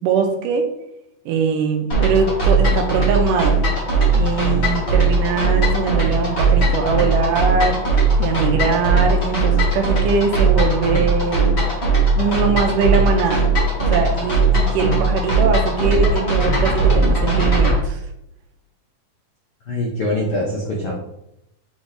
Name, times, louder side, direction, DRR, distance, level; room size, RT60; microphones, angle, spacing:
voice 1, 0.0-0.7 1.3-3.6 4.1-11.5 12.2-13.5 13.8-18.0, right 5 dB, 80° right, 4 dB, 2.2 m, -21 dB
sound 1, 1.9-17.8, right 3 dB, 45° left, 0.8 m, -18 dB
voice 2, 19.7-20.9, left 1 dB, 85° left, -3 dB, 1.1 m, -23 dB
7.1 x 4.0 x 3.3 m, 0.83 s
omnidirectional pair, 4.0 m